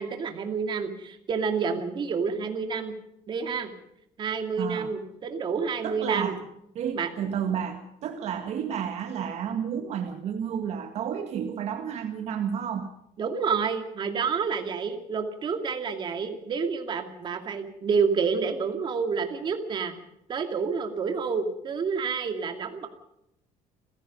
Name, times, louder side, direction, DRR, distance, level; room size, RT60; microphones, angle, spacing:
voice 1, 0.0-2.9 3.3-3.7 4.2-6.3 6.9-7.1 13.2-19.9 20.3-22.9, right 5 dB, 35° right, 6 dB, 2.5 m, -29 dB
voice 2, 4.6-4.9 5.8-6.4 6.8-12.9, right 8 dB, 55° right, 6 dB, 1.8 m, -31 dB
30.0 x 16.5 x 5.4 m, 0.81 s
cardioid pair, 155°, 13 cm